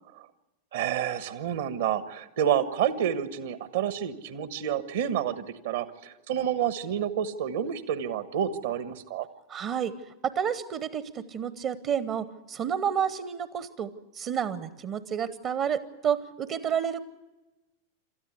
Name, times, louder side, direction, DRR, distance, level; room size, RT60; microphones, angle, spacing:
voice 1, 0.7-9.3, right 9 dB, 60° right, 12 dB, 1.3 m, -29 dB
voice 2, 9.5-9.9 10.2-17.0, right 8 dB, 35° right, 15 dB, 0.9 m, -30 dB
27.5 x 13.5 x 8.3 m, 1.1 s
figure-of-eight pair, 90°, 0 cm